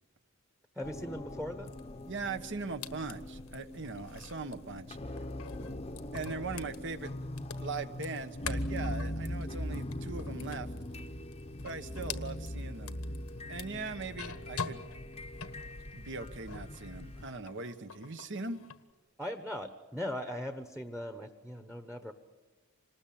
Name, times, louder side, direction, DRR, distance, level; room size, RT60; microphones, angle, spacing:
voice 1, 0.7-1.8 19.2-22.1, left 1 dB, 5° right, 8 dB, 1.1 m, -39 dB
sound 1, 0.8-17.3, left 1 dB, 30° left, 0.9 m, -41 dB
sound 2, 1.7-16.8 17.1-18.8, left 6 dB, 90° left, 1.4 m, -47 dB
voice 2, 2.1-5.0 6.1-7.1 7.6-10.7 11.6-13.0 13.5-14.8 15.6-18.6, right 4 dB, 55° right, 10 dB, 1.2 m, -40 dB
27.0 x 20.0 x 8.7 m, 1.3 s
head